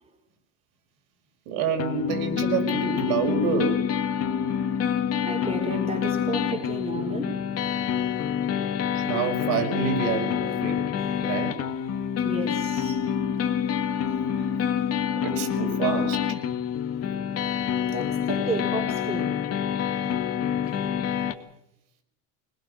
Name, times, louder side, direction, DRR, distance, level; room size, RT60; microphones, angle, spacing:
voice 1, 1.5-3.8 9.0-10.8 11.2-11.5 15.2-16.2, right 5 dB, 75° right, 5.7 m, -27 dB
sound 1, 1.8-21.3, left 8 dB, 40° left, 2.0 m, -27 dB
voice 2, 5.2-7.4 12.2-13.0 17.9-19.4, right 2 dB, 15° right, 4.0 m, -32 dB
25.5 x 20.5 x 6.4 m
cardioid pair, 145°, 38 cm